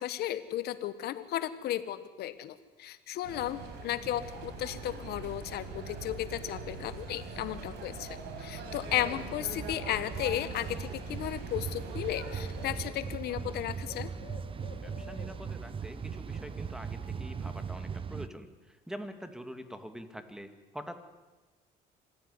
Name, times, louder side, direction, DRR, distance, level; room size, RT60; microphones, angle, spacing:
voice 1, 0.0-14.1, left 12 dB, 70° left, 13 dB, 1.4 m, -35 dB
sound 1, 3.2-12.8, right 4 dB, 80° right, 5.1 m, -42 dB
sound 2, 8.6-18.3, right 6 dB, 30° right, 0.8 m, -39 dB
Bird, 9.9-17.7, left 6 dB, 50° left, 2.2 m, -51 dB
voice 2, 14.7-18.5 18.9-20.9, equal, 5° right, 9 dB, 2.3 m, -45 dB
26.0 x 16.0 x 9.7 m, 1.2 s
cardioid pair, 110°, 17 cm